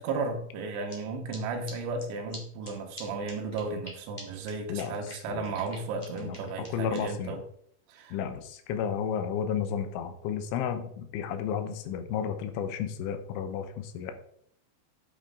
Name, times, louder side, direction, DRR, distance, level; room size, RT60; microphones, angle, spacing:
voice 1, 0.0-7.4 7.9-8.2, right 3 dB, 80° right, 2 dB, 3.6 m, -34 dB
sound 1, 0.9-1.0 1.3-1.4 1.7-1.8 2.0-2.1 2.3-2.4 2.6-2.7 3.0-3.1 3.3-3.9 4.2-4.3 4.5-4.6 4.8-7.0, left 1 dB, 25° left, 0.9 m, -45 dB
voice 2, 6.7-7.4 8.1-14.1, left 8 dB, 80° left, 8 dB, 3.3 m, -32 dB
8.8 x 8.1 x 3.8 m, 0.67 s
omnidirectional pair, 5.6 m